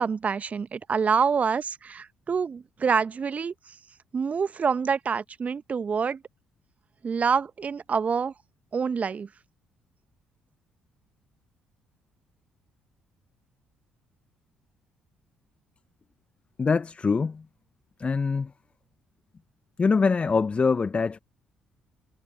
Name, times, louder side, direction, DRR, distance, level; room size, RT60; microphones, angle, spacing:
voice 1, 0.0-3.5 4.1-6.2 7.0-8.3 8.7-9.3, right 6 dB, 40° right, 1.2 m, -26 dB
voice 2, 16.6-17.5 18.0-18.5 19.8-21.2, left 4 dB, 30° left, 0.9 m, -24 dB
figure-of-eight pair, 45°, 4 cm